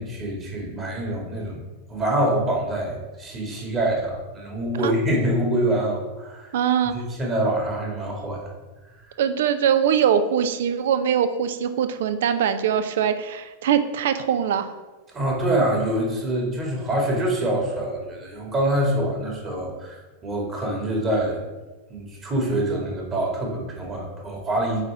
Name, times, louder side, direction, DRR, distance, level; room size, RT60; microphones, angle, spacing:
voice 1, 0.0-1.6 1.9-6.5 6.9-8.5 9.0-9.2 15.1-21.4 21.9-24.8, right 1 dB, 25° right, -1 dB, 1.9 m, -25 dB
voice 2, 6.5-6.9 9.2-14.7, right 8 dB, 55° right, 10 dB, 0.5 m, -22 dB
8.2 x 3.6 x 4.7 m, 1.2 s
figure-of-eight pair, 90°, 0 cm